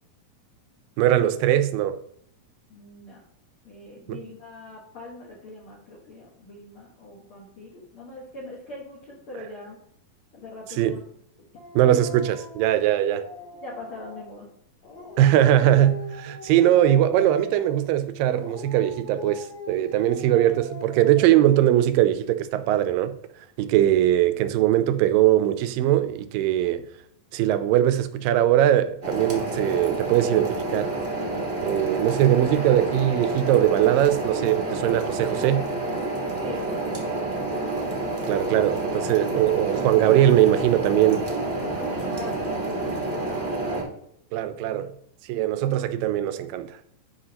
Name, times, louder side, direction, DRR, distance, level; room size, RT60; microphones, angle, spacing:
voice 1, 1.0-2.0 4.1-4.2 10.8-11.0 11.7-13.2 15.2-23.2 23.6-26.8 27.3-30.9 31.6-35.6 38.3-41.2 44.3-44.9 45.2-46.8, right 12 dB, 85° right, 2.3 m, -21 dB
voice 2, 2.7-3.2 3.6-9.8 10.3-11.0 13.6-14.5 36.4-37.3 41.7-42.4 42.7-43.5, left 2 dB, 55° left, 1.7 m, -42 dB
Dog, 11.6-14.4 14.8-17.9 18.3-21.9, left 2 dB, 80° left, 4.8 m, -41 dB
sound 1, 29.0-43.8, right 2 dB, 50° right, 0.7 m, -29 dB
11.5 x 4.9 x 2.9 m
omnidirectional pair, 4.0 m